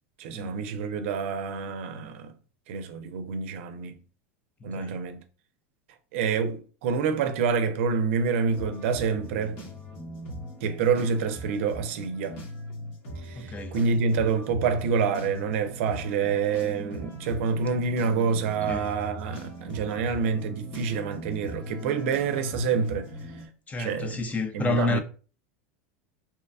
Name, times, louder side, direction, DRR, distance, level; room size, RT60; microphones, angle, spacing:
voice 1, 0.2-2.3 2.7-4.0 4.6-5.2 6.1-9.6 10.6-12.4 13.2-23.1 23.8-24.2 24.5-25.0, right 5 dB, 70° right, 0.5 m, -27 dB
sound 1, 8.4-23.5, equal, 60° left, 1.1 m, -40 dB
voice 2, 13.4-13.7 18.7-18.9 23.7-25.0, left 2 dB, 20° left, 0.4 m, -29 dB
2.8 x 2.3 x 2.3 m
hypercardioid pair, 105°, 7 cm